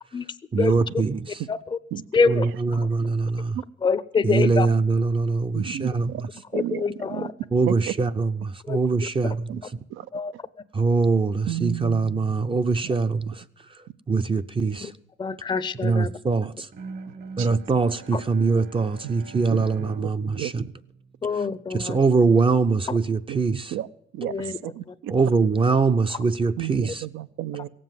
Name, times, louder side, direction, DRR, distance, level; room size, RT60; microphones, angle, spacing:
voice 1, 0.5-1.4 2.3-3.6 4.2-6.3 7.5-9.8 10.7-13.4 14.1-14.9 15.8-16.7 17.4-20.7 21.7-23.7 25.1-27.0, right 4 dB, 25° right, 0.5 m, -23 dB
voice 2, 2.1-2.5 3.8-4.7 6.5-7.3 8.7-8.8 10.1-10.3 14.8-14.9 15.2-16.1 21.2-22.0 24.3-24.6, left 4 dB, 25° left, 0.5 m, -25 dB
voice 3, 5.5-6.2 6.5-7.3 7.7-7.9 9.5-9.6 9.9-10.1 11.5-12.4 17.4-17.5 19.5-19.7 20.4-20.5 23.3-23.4 23.7-23.9 24.1-25.1 26.6-27.7, right 12 dB, 85° right, 0.6 m, -32 dB
Bowed string instrument, 16.7-21.8, right 4 dB, 55° right, 1.4 m, -44 dB
17.0 x 7.6 x 7.5 m
cardioid pair, 90°, 20 cm